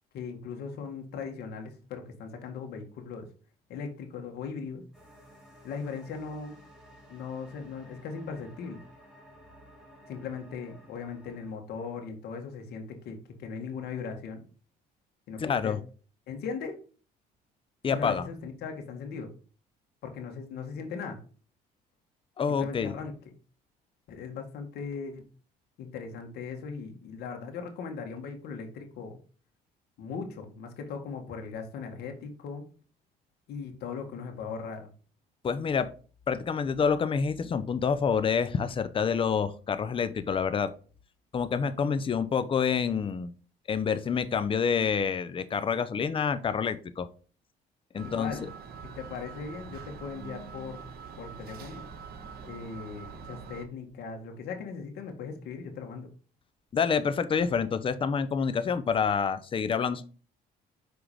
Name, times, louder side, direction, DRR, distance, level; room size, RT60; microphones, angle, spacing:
voice 1, 0.1-3.3 3.7-4.8 5.6-6.6 7.1-8.8 10.1-14.4 15.3-15.8 16.3-16.8 17.9-19.3 20.0-21.2 22.5-23.1 24.1-25.2 25.8-29.2 30.0-32.6 33.5-34.9 48.0-48.5 48.8-50.8 51.2-51.9 52.4-56.1, left 5 dB, 75° left, 4 dB, 2.0 m, -38 dB
sound 1, 4.9-11.5, equal, 5° right, 3.1 m, -54 dB
voice 2, 15.4-15.8 17.8-18.3 22.4-22.9 35.4-35.9 36.3-40.7 41.3-43.3 43.7-47.1 47.9-48.3 56.7-60.0, left 6 dB, 30° left, 11 dB, 0.8 m, -27 dB
sound 2, 47.9-53.6, right 6 dB, 65° right, 1.4 m, -44 dB
6.2 x 4.8 x 5.1 m, 0.38 s
cardioid pair, 110°, 17 cm